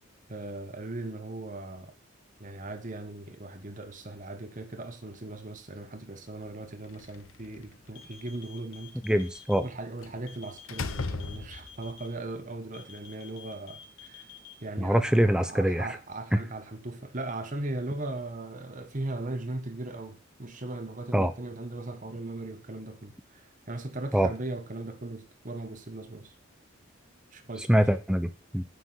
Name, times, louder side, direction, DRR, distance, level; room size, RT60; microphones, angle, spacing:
voice 1, 0.3-1.9 2.4-9.0 9.6-14.3 14.6-26.3 27.3-27.8, right 2 dB, 40° right, 1.2 m, -38 dB
Slam, 6.8-7.9 10.0-10.2 10.7-11.9, left 3 dB, 90° left, 0.9 m, -36 dB
sound 1, 7.9-9.6 10.3-12.1 12.7-14.5, left 8 dB, 70° left, 2.1 m, -49 dB
voice 2, 9.0-9.6 14.8-15.9 16.3-16.4 21.1-21.3 24.1-24.3 27.7-28.6, equal, 5° right, 0.7 m, -24 dB
9.6 x 6.1 x 6.3 m
head